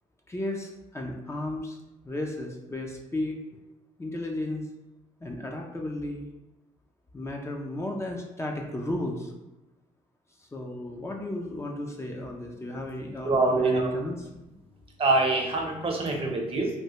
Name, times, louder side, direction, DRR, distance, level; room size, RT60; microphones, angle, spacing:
voice 1, 0.3-1.8 2.0-3.4 4.0-4.6 5.2-6.2 7.1-9.3 10.5-14.3, left 1 dB, 20° left, 1 dB, 0.5 m, -34 dB
voice 2, 13.2-13.9 15.0-16.7, right 3 dB, 40° right, 1 dB, 0.7 m, -25 dB
3.2 x 2.3 x 2.9 m, 0.97 s
cardioid pair, 75°, 14 cm